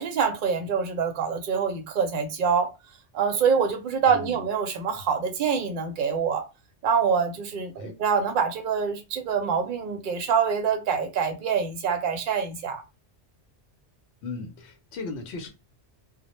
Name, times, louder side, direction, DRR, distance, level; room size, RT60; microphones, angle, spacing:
voice 1, 0.0-2.7 3.1-6.4 6.8-12.8, right 6 dB, 55° right, 0.6 m, -25 dB
voice 2, 14.2-15.5, left 3 dB, 75° left, 0.8 m, -36 dB
2.1 x 2.1 x 2.9 m
omnidirectional pair, 1.1 m